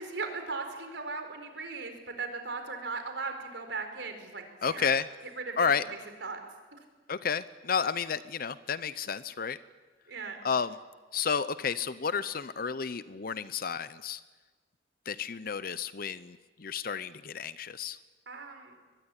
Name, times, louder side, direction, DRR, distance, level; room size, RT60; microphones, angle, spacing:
voice 1, 0.0-4.4 4.7-4.9 5.4-6.4 10.1-10.4 18.3-18.7, right 4 dB, 80° right, 6 dB, 4.6 m, -38 dB
voice 2, 4.6-5.1 5.6-5.8 7.1-9.6 10.4-10.8 11.1-14.2 15.1-18.0, left 6 dB, 50° left, 15 dB, 0.7 m, -31 dB
22.5 x 20.0 x 10.0 m, 1.3 s
head